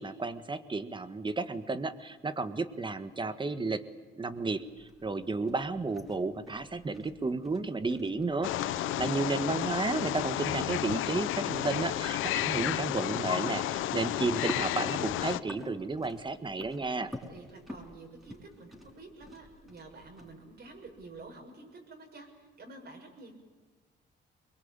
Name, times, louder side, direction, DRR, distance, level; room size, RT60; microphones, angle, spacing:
voice 1, 0.0-3.8 4.1-8.5 9.0-17.1, right 3 dB, 25° right, 11 dB, 1.6 m, -32 dB
sound 1, 4.3-21.3, equal, ahead, 5.9 m, -49 dB
Wild animals, 8.4-15.4, left 14 dB, 85° left, 0.7 m, -32 dB
voice 2, 8.6-9.4 17.3-23.3, right 3 dB, 55° right, 2 dB, 6.9 m, -49 dB
sound 2, 11.8-19.0, left 2 dB, 25° left, 1.4 m, -51 dB
23.0 x 22.0 x 9.0 m, 1.4 s
cardioid pair, 90°, 20 cm